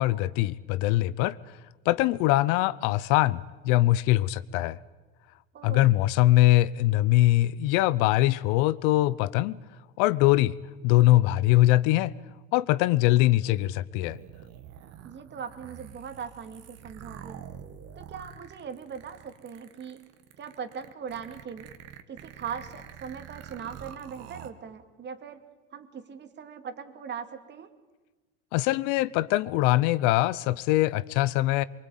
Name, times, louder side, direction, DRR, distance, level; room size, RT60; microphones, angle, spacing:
voice 1, 0.0-1.4 1.9-4.8 5.6-9.6 10.0-10.6 10.8-12.1 12.5-14.2 28.5-31.6, left 16 dB, 75° left, 0.8 m, -22 dB
voice 2, 5.5-5.9 15.0-17.4 18.0-20.0 20.4-21.7 22.1-25.4 25.7-27.7, right 7 dB, 35° right, 2.3 m, -40 dB
sound 1, 14.0-24.5, right 9 dB, 55° right, 1.8 m, -46 dB
24.0 x 23.5 x 9.1 m
supercardioid pair, 120°, 30 cm